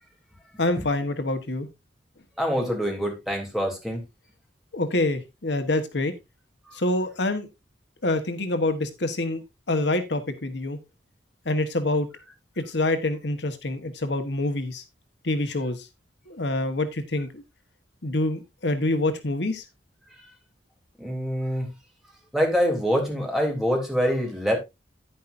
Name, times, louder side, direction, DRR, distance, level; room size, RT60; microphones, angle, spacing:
voice 1, 0.6-1.7 4.7-6.1 6.7-7.5 8.0-9.4 9.7-10.8 11.4-12.1 12.6-14.8 15.2-15.9 16.3-17.4 18.0-19.6, left 2 dB, 70° left, 1.4 m, -26 dB
voice 2, 2.4-4.0 21.0-21.7 22.3-24.6, equal, ahead, 3.3 m, -25 dB
10.5 x 10.0 x 2.6 m
head